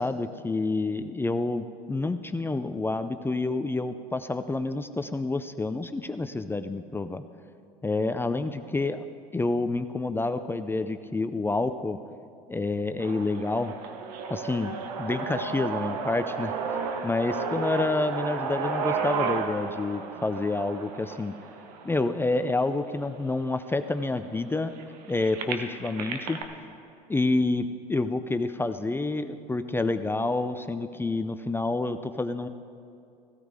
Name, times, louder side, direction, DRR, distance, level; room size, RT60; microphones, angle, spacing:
voice 1, 0.0-7.2 7.8-9.0 9.3-12.0 12.5-13.7 14.3-16.5 17.0-21.3 21.8-24.7 25.1-26.4 27.1-32.5, left 2 dB, 10° left, 10 dB, 0.5 m, -28 dB
sound 1, 13.0-23.0 23.6-23.7 24.0-26.4, right 5 dB, 75° right, 1.1 m, -33 dB
16.0 x 13.0 x 3.7 m, 2.5 s
hypercardioid pair, 85°, 20 cm